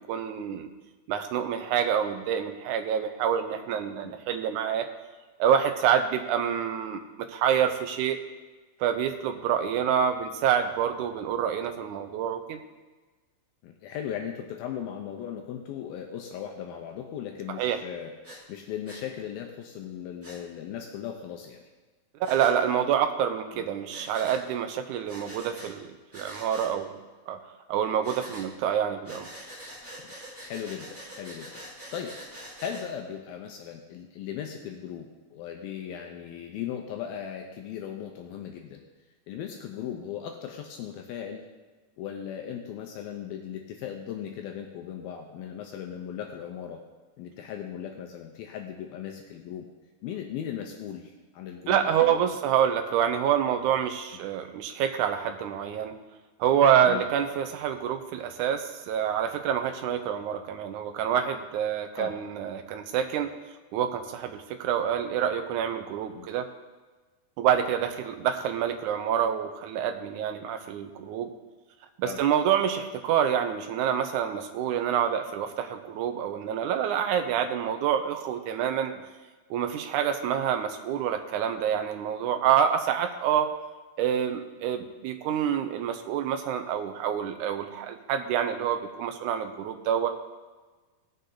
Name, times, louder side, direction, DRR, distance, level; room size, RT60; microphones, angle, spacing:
voice 1, 0.1-0.7 1.1-4.9 5.4-8.2 8.8-12.6 17.6-17.8 22.2-27.0 27.3-27.4 27.7-29.3 51.7-55.9 56.4-63.3 63.7-66.5 67.4-71.3 72.0-78.9 79.5-83.5 84.0-90.1, right 9 dB, 75° right, 6 dB, 1.8 m, -27 dB
voice 2, 13.6-18.1 18.5-21.6 23.5-23.7 29.1-29.2 30.0-30.1 30.4-31.6 31.9-32.2 32.6-38.8 39.3-41.4 42.0-46.8 47.2-49.7 50.0-52.2 56.8-57.1 62.0-62.1 66.2-66.3 72.0-72.2 77.4-77.5, left 9 dB, 80° left, 3 dB, 2.6 m, -38 dB
Breathing, 18.2-18.4 18.9-19.0 20.2-20.4 22.2-22.5 23.9-24.4 25.1-25.7 26.1-26.7 28.0-28.5 29.0-32.9, equal, 5° right, 2.2 m, -44 dB
18.0 x 6.8 x 3.9 m, 1.3 s
omnidirectional pair, 4.4 m